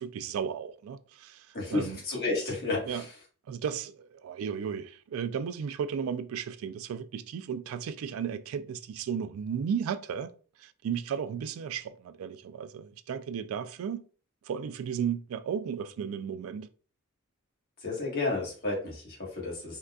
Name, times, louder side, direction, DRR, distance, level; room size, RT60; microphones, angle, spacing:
voice 1, 0.0-2.0 2.9-3.0 3.5-10.3 10.6-14.0 14.5-16.7, right 7 dB, 80° right, 0.3 m, -34 dB
voice 2, 1.5-3.1 17.8-19.8, left 3 dB, 50° left, 1.4 m, -32 dB
3.8 x 2.3 x 2.3 m
head